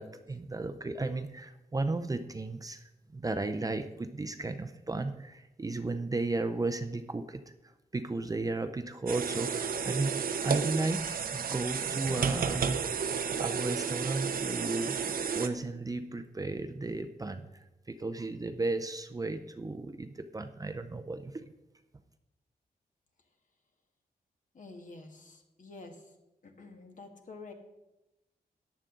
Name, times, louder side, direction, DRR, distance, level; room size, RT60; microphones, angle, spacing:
voice 1, 0.0-2.8 3.1-7.4 7.9-12.8 13.4-21.5, right 2 dB, 20° right, 8 dB, 0.6 m, -34 dB
sound 1, 9.1-15.5, right 6 dB, 65° right, 0.8 m, -32 dB
voice 2, 24.5-26.1 26.4-27.5, left 3 dB, 55° left, 4 dB, 1.6 m, -49 dB
14.5 x 9.8 x 3.8 m, 0.99 s
wide cardioid pair, 130°, 16 cm